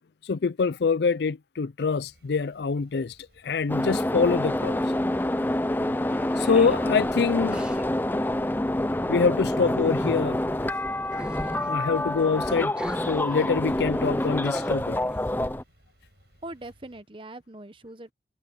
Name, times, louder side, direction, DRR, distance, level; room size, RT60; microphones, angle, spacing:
voice 1, 0.2-3.2 3.4-4.8 6.4-7.7 9.1-10.4 11.5-12.7 13.1-15.0, left 5 dB, 70° left, 0.4 m, -25 dB
sound 1, 2.0-17.0, equal, 65° right, 7.5 m, -60 dB
sound 2, 3.7-15.6, left 1 dB, 10° left, 0.4 m, -27 dB
sound 3, 6.0-7.8 9.3-10.2 11.1-11.8 12.8-13.5 13.9-14.0 14.4-15.3, equal, 5° right, 1.7 m, -39 dB
voice 2, 16.4-18.1, right 1 dB, 30° right, 1.0 m, -41 dB
head